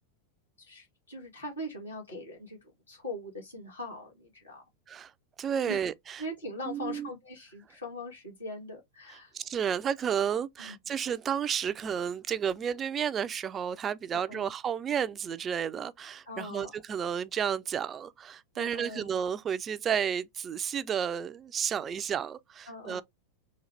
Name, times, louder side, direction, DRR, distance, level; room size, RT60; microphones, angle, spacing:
voice 1, 0.6-4.6 5.6-5.8 6.2-9.3 10.7-10.8 14.1-14.5 16.3-16.7 18.6-19.1 22.7-23.0, left 1 dB, 80° left, 1.9 m, -41 dB
voice 2, 5.4-6.2 6.7-7.1 9.3-23.0, right 8 dB, 25° right, 0.4 m, -32 dB
3.9 x 2.4 x 3.2 m
figure-of-eight pair, 90°, 0 cm